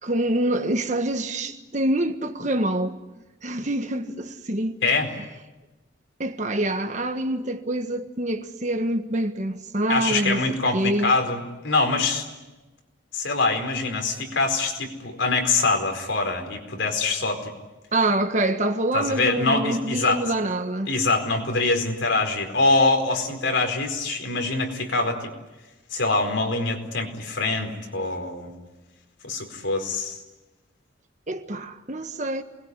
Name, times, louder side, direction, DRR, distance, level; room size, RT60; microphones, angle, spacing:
voice 1, 0.0-3.0 3.4-4.8 6.2-10.4 10.7-11.1 17.9-20.9 31.3-32.4, right 1 dB, 40° right, 1.5 m, -26 dB
voice 2, 9.9-12.3 13.1-17.5 18.9-20.2 20.9-25.3 25.9-28.5 29.2-30.2, left 3 dB, 70° left, 4.6 m, -24 dB
28.5 x 21.5 x 9.8 m
head